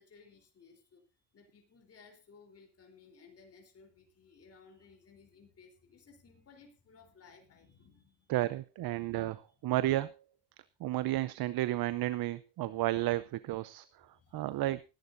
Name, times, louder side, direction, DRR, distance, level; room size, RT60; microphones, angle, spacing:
voice 1, 0.0-8.3 8.9-9.6 12.7-12.8 14.1-14.7, left 5 dB, 30° left, 2 dB, 3.7 m, -60 dB
voice 2, 8.3-10.1 10.8-14.1 14.3-14.8, right 15 dB, 50° right, 16 dB, 0.7 m, -32 dB
20.0 x 11.5 x 2.6 m, 0.29 s
cardioid pair, 120°, 46 cm